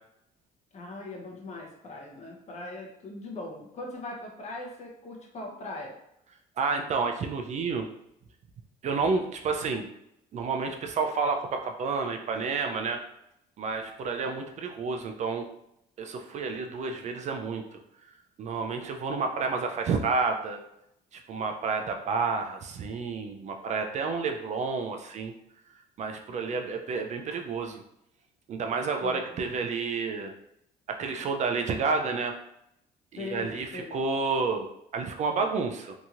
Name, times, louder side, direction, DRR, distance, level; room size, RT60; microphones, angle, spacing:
voice 1, 0.7-5.9 29.0-29.3 33.2-34.0, left 2 dB, 40° left, 0 dB, 0.8 m, -40 dB
voice 2, 6.6-7.9 8.8-9.9 10.3-13.0 13.6-15.5 16.0-17.8 18.4-20.6 21.1-25.3 26.0-27.8 28.5-30.3 30.9-32.3 33.1-35.9, right 4 dB, 45° right, 4 dB, 0.4 m, -30 dB
2.9 x 2.7 x 2.4 m, 0.78 s
cardioid pair, 110°, 17 cm